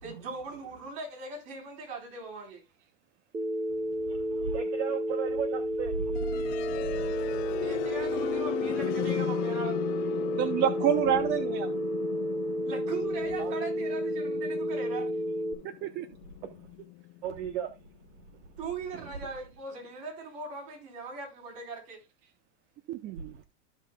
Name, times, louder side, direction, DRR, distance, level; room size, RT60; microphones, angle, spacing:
voice 1, 0.0-2.6 7.6-9.8 12.6-15.1 18.6-22.0, right 3 dB, 50° right, 4.1 m, -40 dB
Telephone, 3.3-15.5, equal, 15° right, 1.4 m, -31 dB
voice 2, 3.8-7.7 13.4-13.5 16.4-16.7 17.2-17.7 18.9-19.1 23.2-23.4, right 7 dB, 65° right, 1.1 m, -36 dB
sound 1, 6.1-18.0, left 19 dB, 45° left, 0.7 m, -37 dB
voice 3, 10.4-11.7 15.8-16.1 22.9-23.3, right 10 dB, 30° right, 0.6 m, -27 dB
14.0 x 5.6 x 2.2 m
supercardioid pair, 140°, 36 cm